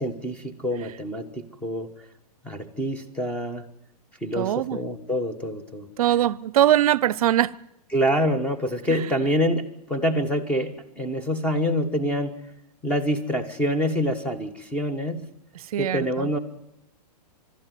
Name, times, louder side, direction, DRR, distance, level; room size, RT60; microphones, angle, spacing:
voice 1, 0.0-1.9 2.4-3.7 4.2-5.9 7.9-12.3 12.8-15.2 15.8-16.4, equal, 5° left, 1.2 m, -26 dB
voice 2, 4.4-4.8 6.0-7.5 8.9-9.1 15.5-16.3, right 12 dB, 60° right, 0.7 m, -22 dB
22.5 x 12.5 x 9.2 m
hypercardioid pair, 155°, 21 cm